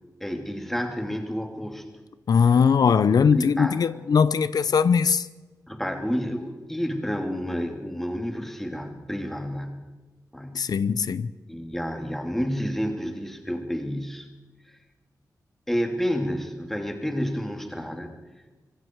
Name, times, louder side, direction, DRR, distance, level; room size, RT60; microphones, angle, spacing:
voice 1, 0.2-1.8 2.8-3.8 5.7-9.8 10.3-10.6 11.5-14.3 14.7-14.8 15.7-18.1, equal, 5° left, 2.8 m, -30 dB
voice 2, 2.3-5.3 10.5-11.3, left 6 dB, 75° left, 0.6 m, -20 dB
25.5 x 23.5 x 4.7 m
wide cardioid pair, 170°, 7 cm